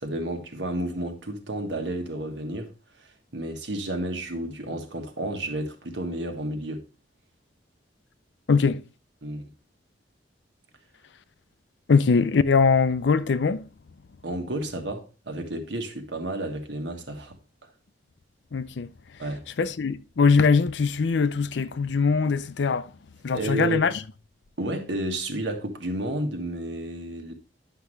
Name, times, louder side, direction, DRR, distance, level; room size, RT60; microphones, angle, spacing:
voice 1, 0.0-2.7 3.0-6.8 9.2-9.5 14.2-17.4 19.2-19.4 23.3-23.8 24.6-27.3, right 1 dB, 75° right, 1.5 m, -31 dB
voice 2, 8.5-8.8 11.9-13.6 18.5-18.9 19.6-22.9 23.2-23.9, left 5 dB, 75° left, 0.5 m, -21 dB
10.5 x 5.9 x 3.2 m
head